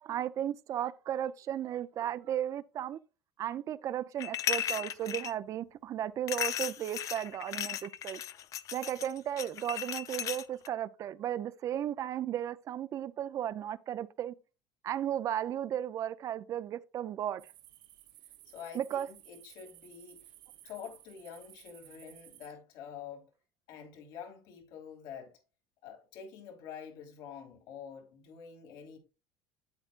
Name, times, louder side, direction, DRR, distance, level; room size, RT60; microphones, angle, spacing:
voice 1, 0.0-3.0 3.4-8.2 8.7-14.3 14.8-17.4 18.7-19.1, right 11 dB, 45° right, 0.5 m, -35 dB
sound 1, 4.2-5.3 6.3-10.7, left 10 dB, 45° left, 0.6 m, -36 dB
sound 2, 17.4-22.5, right 14 dB, 70° right, 0.9 m, -56 dB
voice 2, 18.5-20.3 20.6-23.3 23.7-25.4 25.8-29.0, left 7 dB, 70° left, 2.8 m, -47 dB
8.7 x 8.1 x 2.5 m
cardioid pair, 125°, 8 cm